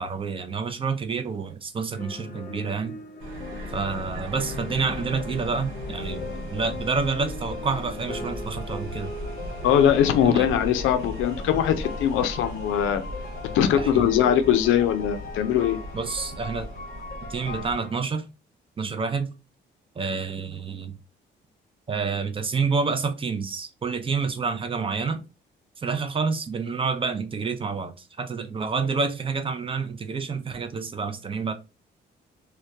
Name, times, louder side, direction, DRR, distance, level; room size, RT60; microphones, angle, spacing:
voice 1, 0.0-2.9 3.7-9.1 10.2-10.5 13.8-14.1 15.9-16.7 17.2-18.3 18.8-19.3 20.0-20.9 21.9-25.2 25.8-31.5, right 5 dB, 25° right, 0.4 m, -28 dB
sound 1, 1.9-17.9, left 3 dB, 45° left, 0.6 m, -39 dB
sound 2, 3.2-17.8, equal, 85° right, 0.6 m, -37 dB
voice 2, 9.6-13.0 13.5-15.8, left 9 dB, 85° left, 0.4 m, -21 dB
2.2 x 2.2 x 2.6 m
cardioid pair, 90°, 20 cm